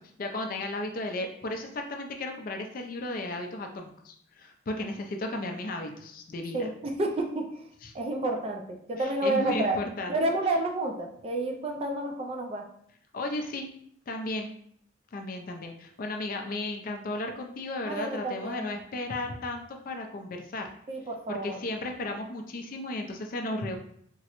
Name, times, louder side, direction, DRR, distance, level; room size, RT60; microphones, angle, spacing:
voice 1, 0.2-6.7 7.8-7.9 9.0-10.2 13.1-13.7 14.1-14.5 15.1-20.7 21.3-23.8, left 2 dB, 45° left, 3 dB, 0.4 m, -34 dB
voice 2, 6.5-7.6 7.9-9.8 10.1-12.7 17.9-18.8 20.9-21.6, right 2 dB, 30° right, 3 dB, 0.3 m, -30 dB
3.6 x 2.0 x 2.9 m, 0.67 s
head